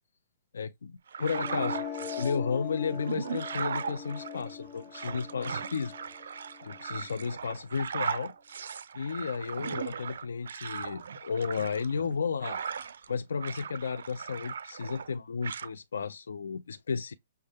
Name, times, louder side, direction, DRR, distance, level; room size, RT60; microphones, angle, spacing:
voice 1, 0.5-5.9 6.6-8.3 8.9-12.6 13.1-17.1, left 5 dB, 85° left, 0.5 m, -33 dB
sound 1, 1.1-2.4 2.8-13.1 13.4-15.1 15.4-15.7, right 6 dB, 75° right, 0.5 m, -38 dB
sound 2, 1.2-7.2, left 8 dB, 15° left, 0.5 m, -41 dB
6.5 x 2.2 x 3.4 m
hypercardioid pair, 155°, 0 cm